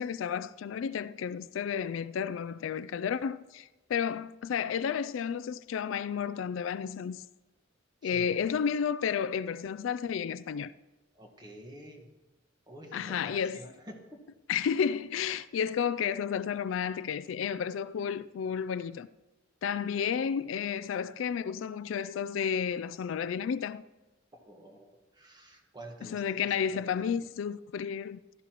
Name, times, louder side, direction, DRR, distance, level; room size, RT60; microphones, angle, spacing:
voice 1, 0.0-7.3 8.0-10.7 12.9-13.6 14.5-19.1 19.6-23.8 26.0-28.2, left 7 dB, 75° left, 0.3 m, -32 dB
voice 2, 8.0-8.4 11.1-12.1 12.7-14.2 24.3-27.0, equal, 20° right, 1.5 m, -49 dB
15.0 x 12.5 x 3.0 m
head